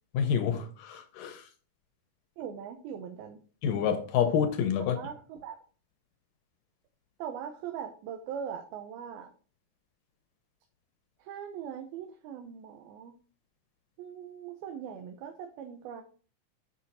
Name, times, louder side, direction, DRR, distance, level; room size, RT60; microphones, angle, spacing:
voice 1, 0.1-1.5 3.6-5.0, left 8 dB, 75° left, 2.2 m, -28 dB
voice 2, 2.4-3.4 5.0-5.6 7.2-9.3 11.2-13.1 14.0-16.0, right 8 dB, 80° right, 2.7 m, -40 dB
7.5 x 6.4 x 4.1 m
omnidirectional pair, 4.3 m